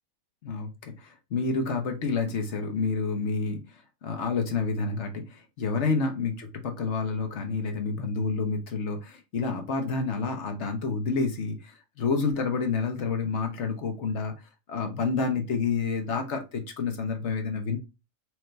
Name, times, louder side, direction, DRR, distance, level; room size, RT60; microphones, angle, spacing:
voice 1, 0.4-14.3 14.7-17.8, left 4 dB, 60° left, 4 dB, 1.2 m, -29 dB
4.6 x 2.7 x 3.2 m, 0.25 s
omnidirectional pair, 1.4 m